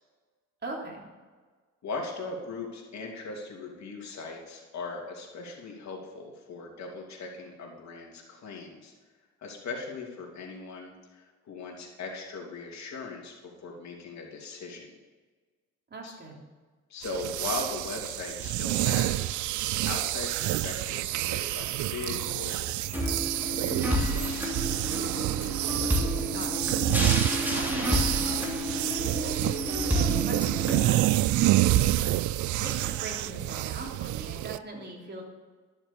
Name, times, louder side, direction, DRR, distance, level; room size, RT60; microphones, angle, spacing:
voice 1, 0.6-1.0 15.9-16.4 26.3-26.7 27.5-28.4 29.2-32.1 32.6-35.2, right 2 dB, 35° right, -1 dB, 3.4 m, -41 dB
voice 2, 1.8-8.9 9.4-15.0 16.0-16.2 16.9-19.4 19.8-24.5, left 3 dB, 65° left, 0 dB, 3.1 m, -39 dB
sound 1, 17.0-34.6, right 15 dB, 75° right, 0.4 m, -28 dB
sound 2, 22.9-30.9, equal, 5° right, 3.0 m, -30 dB
12.0 x 7.1 x 7.2 m, 1.4 s
cardioid pair, 90°, 30 cm